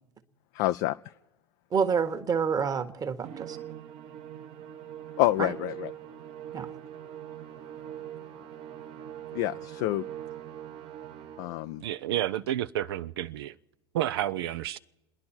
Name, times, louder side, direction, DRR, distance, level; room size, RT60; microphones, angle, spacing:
voice 1, 0.5-1.0 5.2-5.9 9.3-10.0 11.4-11.8, left 16 dB, 50° left, 0.4 m, -27 dB
voice 2, 1.7-3.6 5.4-5.5 6.5-6.7, right 6 dB, 25° right, 1.3 m, -28 dB
Musical instrument, 3.2-11.7, right 11 dB, 45° right, 1.1 m, -42 dB
voice 3, 11.8-13.6 13.9-14.8, right 12 dB, 65° right, 0.5 m, -30 dB
29.0 x 10.5 x 4.4 m
hypercardioid pair, 85°, 14 cm